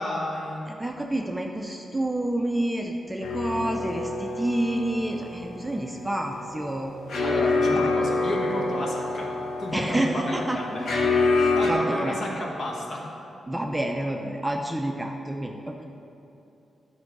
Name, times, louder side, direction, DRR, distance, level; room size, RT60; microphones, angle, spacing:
voice 1, 0.0-0.8 7.2-9.3 9.6-11.1 11.5-13.1, left 1 dB, 50° left, -2 dB, 1.6 m, -31 dB
voice 2, 0.7-6.9 7.7-7.9 9.7-10.6 11.3-12.2 13.5-15.9, right 1 dB, 10° right, 2 dB, 0.5 m, -29 dB
sound 1, 3.2-11.7, left 3 dB, 70° left, 1.1 m, -27 dB
11.5 x 5.4 x 4.6 m, 2.7 s
cardioid pair, 100°, 0 cm